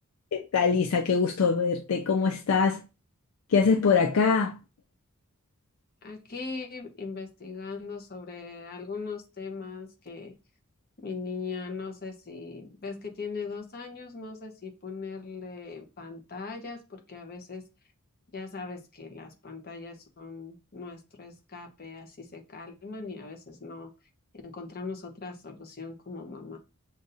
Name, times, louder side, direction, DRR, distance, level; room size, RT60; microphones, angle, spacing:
voice 1, 0.3-2.8 3.5-4.5, left 5 dB, 65° left, 0.4 m, -23 dB
voice 2, 6.0-10.4 11.0-17.6 18.3-23.9 24.4-26.6, left 4 dB, 45° left, 1.0 m, -39 dB
6.0 x 2.6 x 2.6 m
head